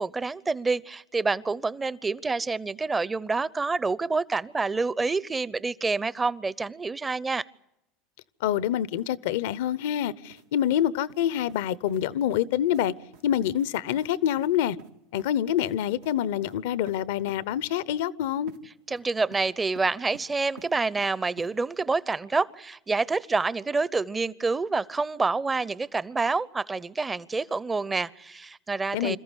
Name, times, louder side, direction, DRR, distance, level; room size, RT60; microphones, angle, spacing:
voice 1, 0.0-7.4 18.9-29.2, right 3 dB, 20° right, 0.8 m, -27 dB
voice 2, 8.4-12.9 13.2-14.8 15.1-18.5 28.9-29.2, left 11 dB, 75° left, 0.8 m, -26 dB
sound 1, 10.3-10.4 10.7-11.6 11.9-12.0 12.3-12.4 12.7-12.8 13.1-13.2 13.5-13.7 13.9-14.1 14.4-14.5 14.8-15.3 15.6-15.7 16.0-16.1 16.4-16.6 16.9-17.0 17.3-17.4 18.5-18.6 18.9-19.5 19.7-20.3 20.6-21.1 21.4-21.5, right 3 dB, 85° right, 2.1 m, -49 dB
27.0 x 14.5 x 9.9 m
hypercardioid pair, 85°, 0 cm